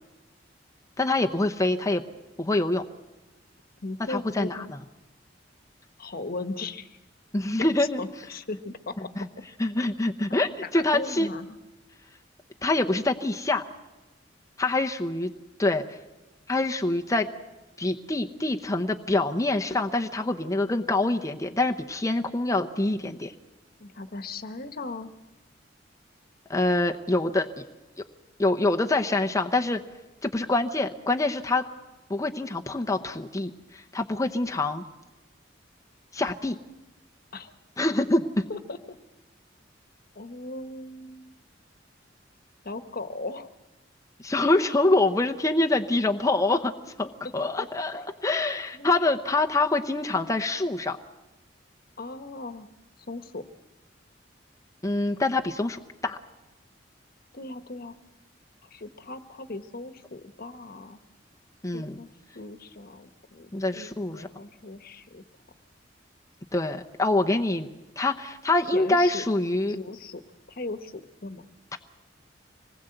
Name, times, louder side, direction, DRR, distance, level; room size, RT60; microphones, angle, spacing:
voice 1, 1.0-2.0 2.4-2.9 4.1-4.6 7.3-8.0 9.2-9.3 9.6-11.3 12.6-13.6 14.6-15.3 15.6-16.0 16.5-17.3 17.8-23.3 26.5-27.6 28.4-29.8 30.2-31.6 32.1-34.8 36.1-36.6 37.8-38.5 44.2-46.7 47.0-51.0 54.8-56.2 61.6-62.0 63.5-64.3 66.5-67.7 68.0-69.8 71.7-71.8, left 2 dB, 20° left, 3 dB, 0.8 m, -25 dB
voice 2, 3.8-4.7 6.0-7.0 7.6-9.3 10.3-11.6 23.8-25.1 37.3-37.5 38.5-39.0 40.1-41.4 42.6-43.5 47.4-47.7 47.9-48.0 48.7-48.9 52.0-52.7 53.1-53.4 57.3-57.9 58.6-61.0 61.7-62.1 62.3-65.2 68.7-69.2 69.7-70.2 70.5-71.4, left 2 dB, 55° left, 9 dB, 1.2 m, -38 dB
25.5 x 20.0 x 7.9 m, 1.1 s
head